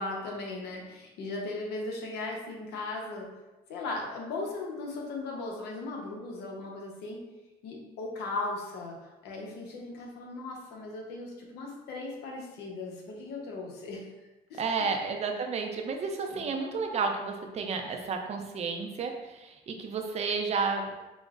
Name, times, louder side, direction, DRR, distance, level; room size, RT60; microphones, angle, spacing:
voice 1, 0.0-3.3 3.7-7.2 7.6-14.1 14.5-14.6 16.4-16.5, left 2 dB, 80° left, 0 dB, 0.8 m, -37 dB
voice 2, 14.6-20.9, right 4 dB, 40° right, 3 dB, 0.4 m, -31 dB
5.1 x 2.1 x 2.4 m, 1.1 s
cardioid pair, 110°, 17 cm